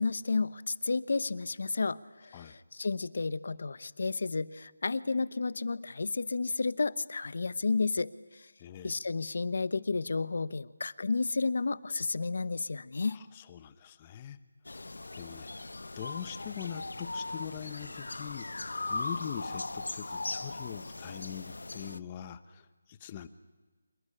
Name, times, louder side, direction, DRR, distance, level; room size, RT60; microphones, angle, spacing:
voice 1, 0.0-8.1 8.8-13.2, left 4 dB, 60° left, 16 dB, 0.9 m, -32 dB
voice 2, 8.6-8.9 13.1-14.4 15.1-15.5 16.0-18.5 18.9-23.3, left 9 dB, 20° left, 13 dB, 0.9 m, -42 dB
sound 1, 14.6-22.0, left 2 dB, 90° left, 0.8 m, -39 dB
27.0 x 19.0 x 10.0 m, 1.3 s
figure-of-eight pair, 175°, 0 cm